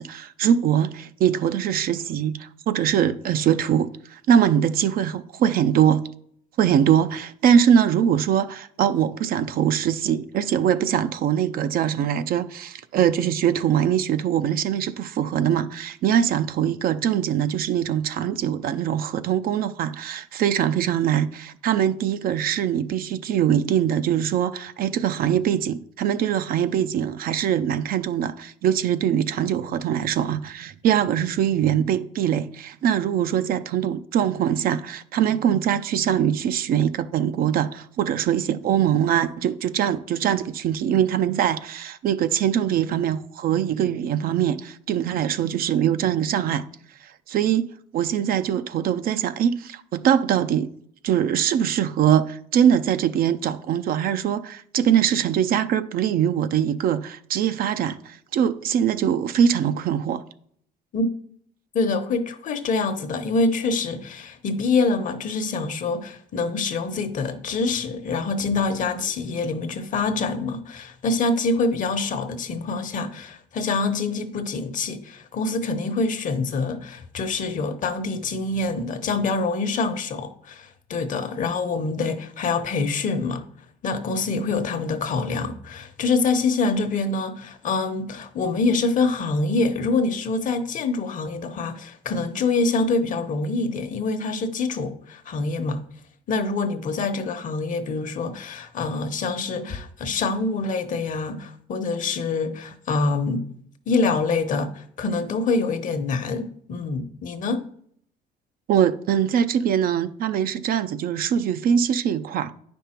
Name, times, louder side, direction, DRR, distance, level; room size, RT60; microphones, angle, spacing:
voice 1, 0.0-6.0 6.6-46.6 47.0-47.7 47.9-50.7 51.0-60.2 108.7-112.5, right 9 dB, 60° right, 0.5 m, -22 dB
voice 2, 61.7-83.4 83.8-95.8 96.3-103.5 103.9-107.6, left 3 dB, 50° left, 1.0 m, -25 dB
9.2 x 5.3 x 4.4 m
cardioid pair, 110°, 17 cm